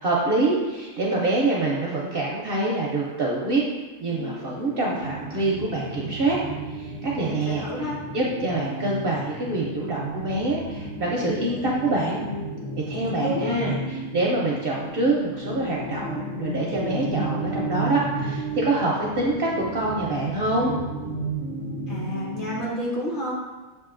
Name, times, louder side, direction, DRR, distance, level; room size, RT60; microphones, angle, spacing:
voice 1, 0.0-3.6 4.0-6.4 6.7-12.2 12.9-20.7, right 2 dB, 55° right, -4 dB, 0.7 m, -25 dB
sound 1, 4.1-22.7, right 2 dB, 75° left, 1.3 m, -33 dB
voice 2, 7.2-8.0 13.1-13.6 21.9-23.3, left 1 dB, 40° left, -6 dB, 1.2 m, -30 dB
7.5 x 2.5 x 2.5 m, 1.2 s
omnidirectional pair, 1.4 m